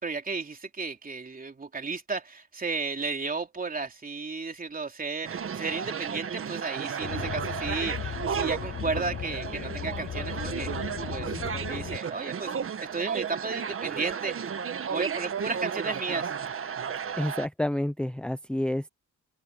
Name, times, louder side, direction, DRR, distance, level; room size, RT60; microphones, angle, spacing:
voice 1, 0.0-10.7 11.1-12.5 12.8-14.4 14.7-16.3, right 4 dB, 30° right, 3.3 m, -33 dB
sound 1, 5.2-17.5, right 7 dB, 45° right, 1.7 m, -34 dB
sound 2, 7.0-12.0, left 9 dB, 40° left, 0.7 m, -36 dB
voice 2, 17.1-18.9, left 1 dB, 5° left, 0.8 m, -29 dB
cardioid pair, 90°, 30 cm